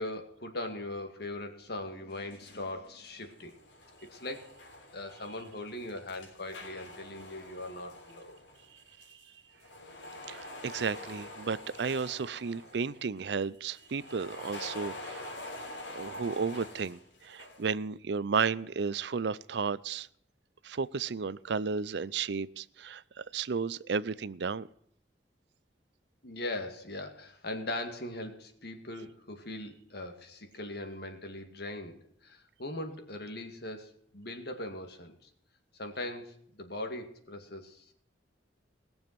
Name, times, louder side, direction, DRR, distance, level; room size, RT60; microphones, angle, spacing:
voice 1, 0.0-3.5 4.1-4.5 4.9-8.4 26.2-35.3 35.7-37.8, left 1 dB, 60° left, 2.1 m, -40 dB
sound 1, 2.1-2.7 3.0-9.3 9.5-13.0 13.7-17.7, left 1 dB, 90° left, 3.5 m, -46 dB
voice 2, 10.3-15.4 15.9-20.1 20.6-24.7, right 5 dB, 65° right, 0.5 m, -33 dB
20.0 x 7.1 x 5.9 m
head